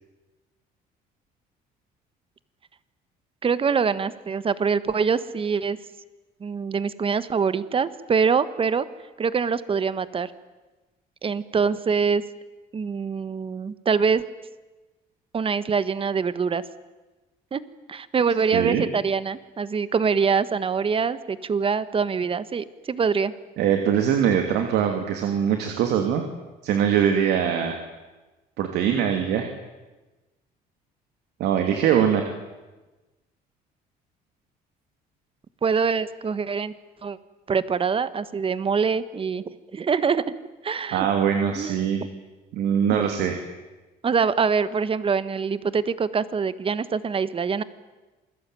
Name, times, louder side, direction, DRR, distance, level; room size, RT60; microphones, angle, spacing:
voice 1, 3.4-5.8 6.4-8.8 9.2-10.3 11.2-12.2 12.7-14.2 15.3-16.6 17.5-23.3 35.6-36.8 37.0-37.2 37.5-39.4 39.7-40.2 40.6-41.1 41.5-42.1 42.9-43.0 44.0-47.6, right 5 dB, 30° right, 15 dB, 1.5 m, -24 dB
voice 2, 18.5-18.9 23.6-26.3 26.6-27.8 28.6-29.5 31.4-32.2 40.9-42.0 42.5-43.4, right 8 dB, 80° right, 5 dB, 2.9 m, -22 dB
28.0 x 21.0 x 9.3 m, 1.2 s
cardioid pair, 110°, 17 cm